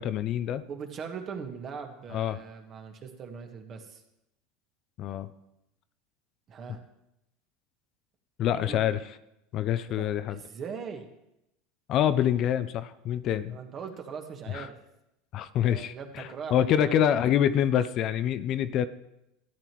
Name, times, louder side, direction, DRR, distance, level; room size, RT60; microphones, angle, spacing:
voice 1, 0.0-0.6 2.1-2.4 5.0-5.3 8.4-9.0 9.5-10.4 11.9-13.6 14.5-14.7 15.3-18.9, left 10 dB, 50° left, 13 dB, 0.4 m, -26 dB
voice 2, 0.7-4.0 6.5-6.8 8.6-8.8 9.9-11.1 13.5-14.7 15.6-16.9, right 6 dB, 40° right, 5 dB, 1.4 m, -40 dB
13.5 x 8.9 x 3.0 m, 0.87 s
hypercardioid pair, 90°, 0 cm